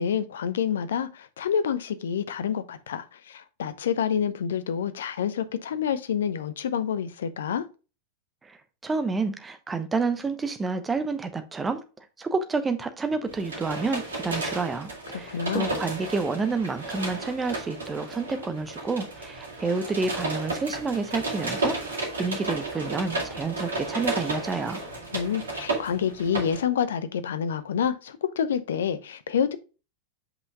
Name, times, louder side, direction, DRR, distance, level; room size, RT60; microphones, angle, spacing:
voice 1, 0.0-7.7 15.3-15.7 25.1-29.6, left 8 dB, 60° left, 0.7 m, -28 dB
voice 2, 8.8-11.8 12.2-21.8 22.2-24.8, right 4 dB, 15° right, 0.9 m, -29 dB
sound 1, 13.3-26.6, right 2 dB, 70° right, 2.2 m, -33 dB
8.2 x 5.6 x 2.3 m
figure-of-eight pair, 90°, 0 cm